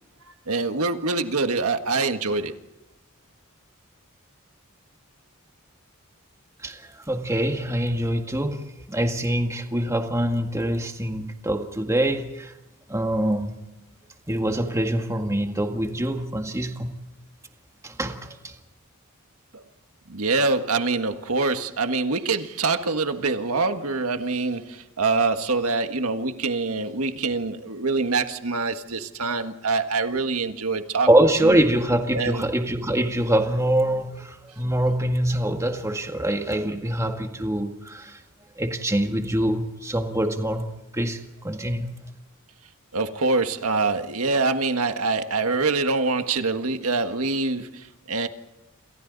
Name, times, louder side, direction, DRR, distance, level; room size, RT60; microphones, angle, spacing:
voice 1, 0.5-2.5 19.5-19.6 20.1-31.1 31.4-31.6 32.1-32.4 42.9-48.3, right 3 dB, 90° right, 1.7 m, -25 dB
voice 2, 6.6-12.5 12.9-13.5 14.3-16.9 17.8-18.6 31.1-38.2 38.6-40.7 40.9-41.9, right 1 dB, 15° right, 1.9 m, -24 dB
28.5 x 28.5 x 4.1 m
head